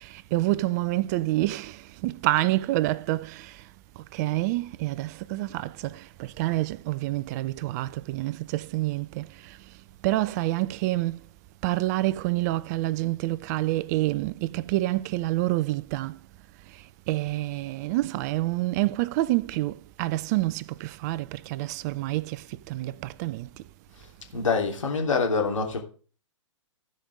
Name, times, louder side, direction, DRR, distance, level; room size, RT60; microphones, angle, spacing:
voice 1, 0.0-3.6 4.1-9.6 10.0-11.2 11.6-16.2 17.1-23.5, right 17 dB, 35° right, 0.4 m, -28 dB
voice 2, 24.3-25.8, left 4 dB, 75° left, 3.2 m, -25 dB
15.5 x 5.2 x 4.9 m
figure-of-eight pair, 120°, 16 cm